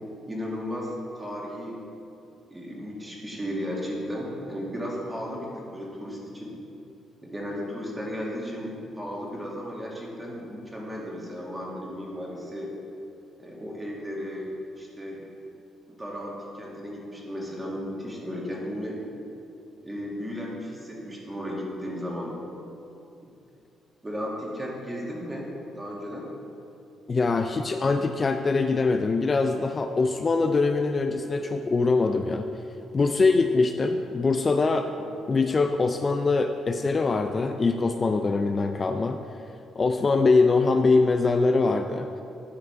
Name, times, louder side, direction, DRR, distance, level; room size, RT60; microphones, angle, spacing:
voice 1, 0.3-1.8 2.5-6.5 7.2-12.7 13.4-15.3 15.9-19.0 19.8-22.4 23.2-23.3 24.0-26.3 34.9-35.1, equal, 15° right, -3 dB, 2.0 m, -35 dB
voice 2, 27.1-32.5 32.9-34.9 35.3-39.2 39.8-42.1, left 3 dB, 35° left, 6 dB, 0.4 m, -23 dB
11.5 x 4.9 x 4.6 m, 2.6 s
cardioid pair, 90°, 0 cm